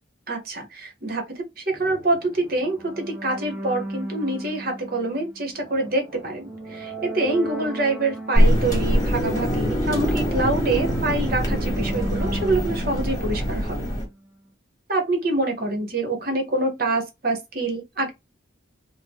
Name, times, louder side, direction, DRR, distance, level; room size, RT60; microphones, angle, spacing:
voice 1, 0.3-13.9 14.9-18.1, right 2 dB, 45° right, 1.2 m, -26 dB
sound 1, 1.7-14.2, right 2 dB, 5° right, 0.8 m, -36 dB
sound 2, 8.3-14.0, equal, 20° left, 1.4 m, -23 dB
3.7 x 2.2 x 3.5 m
head